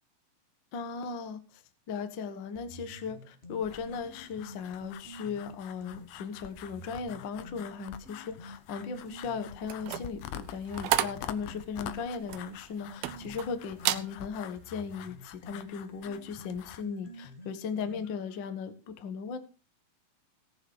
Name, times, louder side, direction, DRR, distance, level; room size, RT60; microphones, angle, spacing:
voice 1, 0.7-1.6 1.9-19.4, left 6 dB, 70° left, 9 dB, 1.1 m, -37 dB
sound 1, 2.5-6.1 6.5-10.1 10.5-18.3, left 1 dB, 45° left, 0.7 m, -48 dB
sound 2, 3.6-16.8, left 12 dB, 90° left, 2.9 m, -47 dB
sound 3, 9.6-13.5 13.8-14.1 14.6-14.8, right 14 dB, 80° right, 2.6 m, -32 dB
17.5 x 7.8 x 4.7 m, 0.34 s
omnidirectional pair, 4.3 m